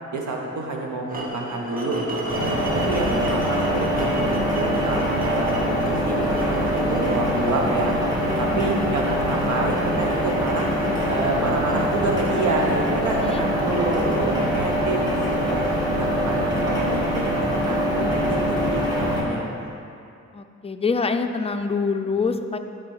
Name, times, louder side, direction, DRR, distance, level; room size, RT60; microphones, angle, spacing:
voice 1, 0.1-2.3 2.7-7.9 8.4-10.7 11.1-15.1 15.4-15.6 16.0-17.2 17.5-19.7, right 2 dB, 80° right, 0 dB, 1.2 m, -28 dB
sound 1, 1.1-17.2, right 1 dB, 30° right, 1.1 m, -35 dB
sound 2, 2.3-19.2, equal, 15° right, 1.9 m, -24 dB
voice 2, 8.4-9.1 13.2-13.5 20.3-22.6, left 4 dB, 20° left, 6 dB, 0.4 m, -26 dB
11.5 x 4.1 x 4.8 m, 2.5 s
cardioid pair, 100°, 29 cm